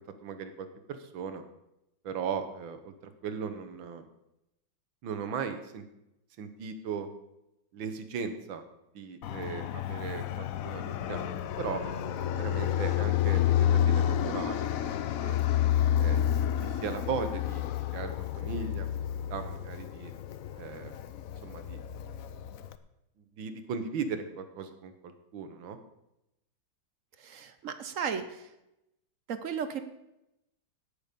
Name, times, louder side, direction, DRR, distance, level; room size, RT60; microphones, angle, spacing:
voice 1, 0.0-1.4 2.0-4.0 5.0-5.8 6.4-7.1 7.7-8.6 8.9-11.3 11.6-11.8 12.4-14.7 15.2-15.4 16.0-16.2 16.6-17.7 17.9-18.9 19.3-20.1 20.5-20.9 21.4-21.8 23.4-25.8, right 6 dB, 75° right, 9 dB, 1.8 m, -37 dB
Fixed-wing aircraft airplane, 9.2-22.7, left 10 dB, 75° left, 0.7 m, -30 dB
voice 2, 27.2-28.5 29.3-29.8, right 7 dB, 60° right, 10 dB, 0.8 m, -35 dB
18.0 x 6.8 x 5.2 m, 0.89 s
omnidirectional pair, 2.2 m